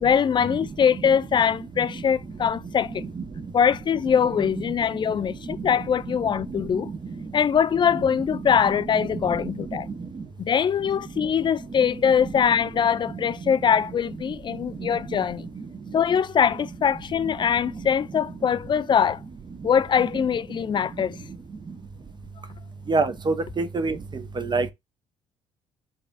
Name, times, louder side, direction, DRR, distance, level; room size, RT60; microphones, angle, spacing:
voice 1, 0.0-3.1 3.5-6.9 7.3-9.9 10.4-15.5 15.9-19.2 19.6-21.2, left 7 dB, 35° left, 0.3 m, -22 dB
voice 2, 22.9-23.9 24.4-24.7, right 3 dB, 30° right, 0.8 m, -24 dB
4.1 x 2.4 x 2.3 m
hypercardioid pair, 50°, 14 cm